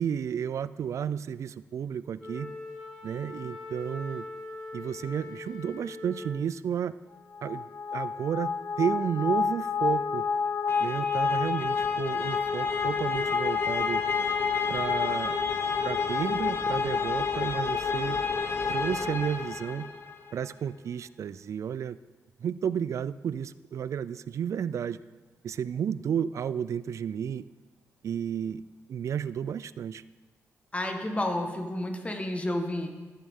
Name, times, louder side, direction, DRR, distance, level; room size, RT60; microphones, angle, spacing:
voice 1, 0.0-2.5 3.0-4.3 4.7-6.9 7.4-7.7 7.9-8.5 8.8-10.3 10.8-14.0 14.7-15.4 15.8-18.2 18.7-19.9 20.3-22.0 22.4-25.0 25.4-27.5 28.0-28.6 28.9-30.0, right 8 dB, 65° right, 17 dB, 0.3 m, -32 dB
Wind instrument woodwind instrument, 2.2-6.5, left 2 dB, 5° left, 3.1 m, -42 dB
sound 1, 7.3-20.1, left 5 dB, 45° left, 0.7 m, -29 dB
voice 2, 30.7-32.9, left 1 dB, 25° left, 5 dB, 1.4 m, -30 dB
13.0 x 8.7 x 3.6 m, 1.3 s
cardioid pair, 85°, 6 cm